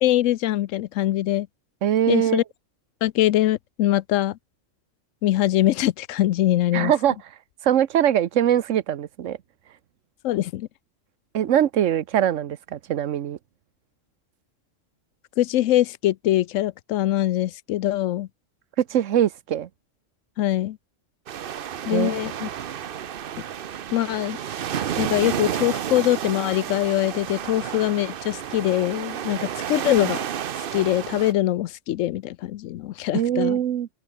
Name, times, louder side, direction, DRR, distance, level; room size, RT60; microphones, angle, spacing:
voice 1, 0.0-1.5 2.1-2.4 3.0-4.4 5.2-6.9 10.2-10.7 15.4-18.3 20.4-20.8 21.9-22.5 23.9-24.4 25.0-30.2 30.7-33.6, left 14 dB, 85° left, 1.0 m, -23 dB
voice 2, 1.8-2.4 6.7-7.2 7.6-9.4 11.3-13.4 18.8-19.7 21.9-22.1 33.1-33.9, right 10 dB, 80° right, 1.2 m, -22 dB
sound 1, 21.3-31.3, right 9 dB, 55° right, 0.8 m, -31 dB
omnidirectional pair, 1.3 m